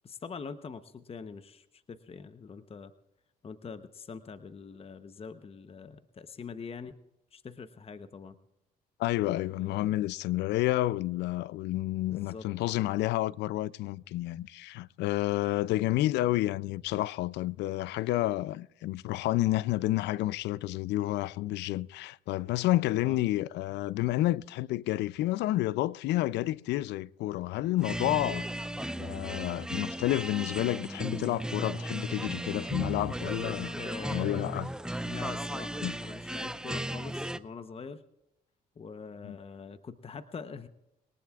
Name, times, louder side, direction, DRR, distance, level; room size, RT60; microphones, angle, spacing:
voice 1, 0.0-2.9 3.4-7.0 7.3-8.4 9.5-10.0 12.1-12.5 23.0-23.2 33.7-34.6 35.1-38.0 38.8-40.7, left 5 dB, 35° left, 0.9 m, -44 dB
voice 2, 9.0-28.4 29.0-33.8 34.1-34.7 35.8-35.9 39.2-39.4, left 16 dB, 80° left, 0.5 m, -30 dB
sound 1, 27.8-37.4, right 1 dB, 5° right, 0.6 m, -36 dB
23.0 x 18.5 x 2.4 m
supercardioid pair, 75°, 18 cm